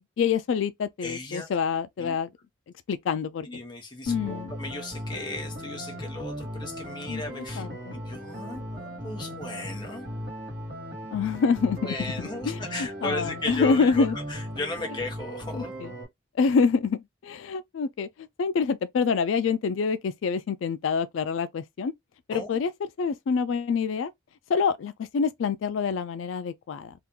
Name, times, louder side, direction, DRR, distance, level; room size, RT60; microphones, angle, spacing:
voice 1, 0.0-2.3 2.9-3.5 4.1-4.5 7.1-7.9 11.1-14.2 15.5-15.9 16.3-21.9 22.3-22.7 23.0-24.1 24.5-26.9, left 5 dB, 85° left, 0.3 m, -26 dB
voice 2, 1.0-1.5 2.0-2.1 3.5-7.6 7.9-10.1 11.8-15.7 22.3-22.5, left 2 dB, 25° left, 0.9 m, -36 dB
sound 1, 4.1-16.1, equal, 55° right, 1.5 m, -37 dB
2.8 x 2.4 x 3.6 m
head